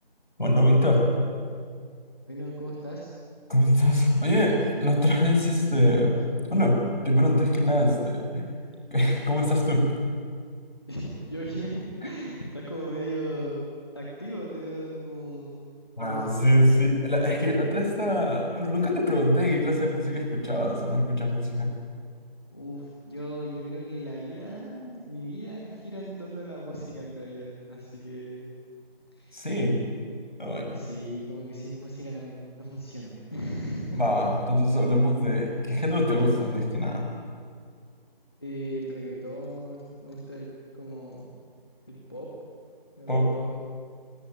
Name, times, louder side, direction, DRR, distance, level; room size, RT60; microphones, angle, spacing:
voice 1, 0.4-1.1 3.5-6.8 7.0-8.4 8.9-9.9 16.0-21.7 29.3-29.8 30.4-30.8 33.9-37.1 43.1-43.3, left 1 dB, 55° left, 0 dB, 6.6 m, -23 dB
voice 2, 2.3-3.1 10.9-13.7 13.9-15.7 16.0-16.6 22.5-28.5 29.1-29.4 30.7-34.3 38.4-40.5 40.7-41.3 41.9-42.3 43.0-43.6, right 1 dB, 25° left, -4 dB, 2.3 m, -37 dB
22.5 x 19.0 x 9.7 m, 2.1 s
figure-of-eight pair, 175°, 30 cm